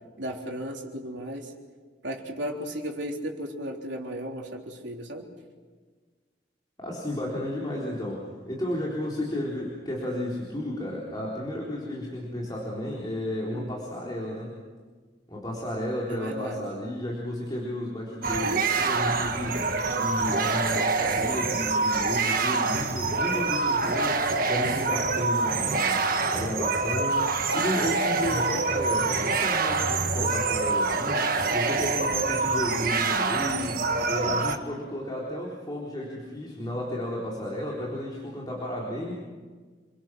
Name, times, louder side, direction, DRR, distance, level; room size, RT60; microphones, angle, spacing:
voice 1, 0.2-1.5 2.0-5.3 13.5-13.7 16.1-16.6 28.2-28.7, equal, 80° right, 0 dB, 3.7 m, -35 dB
voice 2, 6.8-14.6 15.3-39.1, left 1 dB, 25° left, -4 dB, 3.9 m, -33 dB
sound 1, 18.2-34.6, right 4 dB, 50° right, 1.5 m, -26 dB
29.0 x 23.0 x 6.2 m, 1.5 s
head